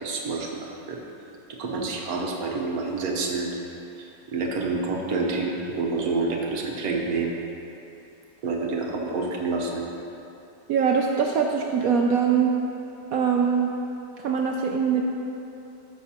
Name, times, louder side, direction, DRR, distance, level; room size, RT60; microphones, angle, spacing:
voice 1, 0.0-1.0 1.6-3.5 4.0-7.3 8.4-9.8, right 3 dB, 55° right, -1 dB, 1.3 m, -28 dB
voice 2, 10.7-12.5 13.1-13.7 14.2-15.0, right 6 dB, 75° right, 1 dB, 0.8 m, -22 dB
13.5 x 6.3 x 2.9 m, 2.8 s
omnidirectional pair, 2.0 m